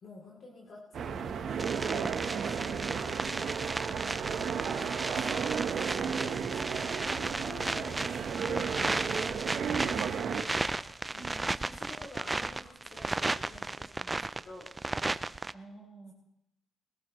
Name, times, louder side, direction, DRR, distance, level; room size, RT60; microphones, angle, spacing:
voice 1, 0.0-3.5 4.6-8.1 8.4-8.7 9.1-9.7 10.1-14.7 15.0-15.2, left 2 dB, 55° left, -3 dB, 3.2 m, -49 dB
sound 1, 0.9-10.4, right 7 dB, 60° right, 1.1 m, -34 dB
sound 2, 1.6-15.5, right 2 dB, 20° right, 0.5 m, -34 dB
voice 2, 15.5-16.1, right 3 dB, 25° left, 0 dB, 4.9 m, -49 dB
22.0 x 15.0 x 3.2 m, 0.82 s
cardioid pair, 90°, 0 cm